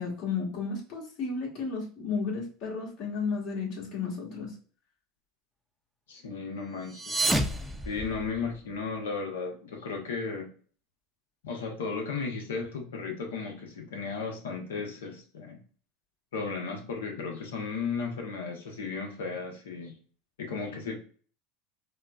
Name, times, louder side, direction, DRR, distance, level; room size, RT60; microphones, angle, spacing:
voice 1, 0.0-4.5, left 5 dB, 60° left, -3 dB, 1.6 m, -33 dB
voice 2, 6.1-7.1 7.9-10.5 11.4-15.6 16.3-20.0 20.4-20.9, left 4 dB, 90° left, 2 dB, 0.8 m, -35 dB
sound 1, 6.8-8.7, right 1 dB, 5° right, 0.4 m, -30 dB
4.4 x 2.1 x 2.3 m, 0.42 s
hypercardioid pair, 100°, 0 cm